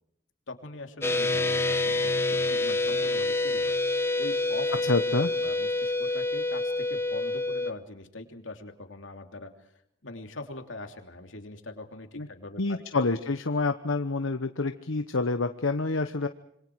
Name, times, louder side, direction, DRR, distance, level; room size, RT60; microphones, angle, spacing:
voice 1, 0.5-4.8 5.4-9.7 10.0-12.8, left 2 dB, 70° left, 5 dB, 3.0 m, -42 dB
sound 1, 1.0-7.7, left 2 dB, 15° left, 0.9 m, -27 dB
voice 2, 4.9-5.3 12.1-12.3 12.6-16.3, left 3 dB, 85° left, 8 dB, 1.1 m, -27 dB
26.5 x 25.0 x 4.8 m, 0.77 s
head